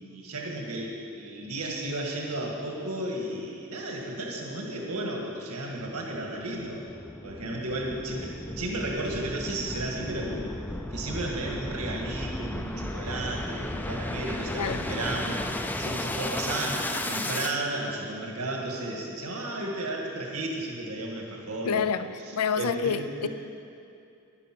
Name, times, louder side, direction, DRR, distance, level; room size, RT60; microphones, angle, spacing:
voice 1, 0.0-6.8 7.2-10.5 10.9-15.4 15.8-21.9 22.5-23.3, right 2 dB, 85° right, 0 dB, 1.7 m, -33 dB
sound 1, 6.1-17.6, left 1 dB, 10° left, 0.3 m, -34 dB
voice 2, 14.6-14.9 21.6-23.3, left 7 dB, 85° left, 13 dB, 0.4 m, -28 dB
10.5 x 10.5 x 6.1 m, 2.6 s
head